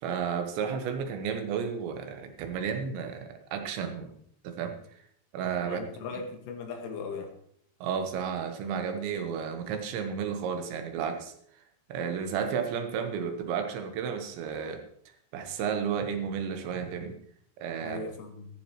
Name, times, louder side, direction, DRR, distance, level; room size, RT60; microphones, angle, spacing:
voice 1, 0.0-4.1 4.4-4.8 5.3-5.8 7.8-11.3 11.9-14.8 15.3-17.1 17.6-18.0, right 7 dB, 75° right, 6 dB, 3.3 m, -32 dB
voice 2, 5.7-7.3 17.8-18.5, left 4 dB, 90° left, 3 dB, 4.4 m, -38 dB
14.0 x 14.0 x 3.1 m, 0.65 s
omnidirectional pair, 5.5 m